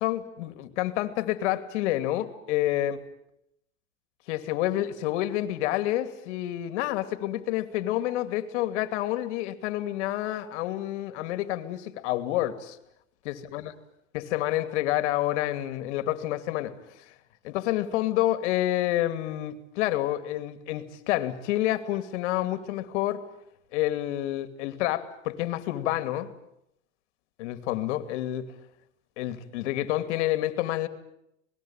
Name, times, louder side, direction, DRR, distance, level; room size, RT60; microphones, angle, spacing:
voice 1, 0.0-3.0 4.3-12.8 13.2-13.7 14.1-16.7 17.4-23.2 23.7-26.3 27.4-28.5 29.2-30.9, left 14 dB, 60° left, 10 dB, 2.7 m, -28 dB
26.5 x 20.0 x 9.0 m, 0.79 s
hypercardioid pair, 120°, 39 cm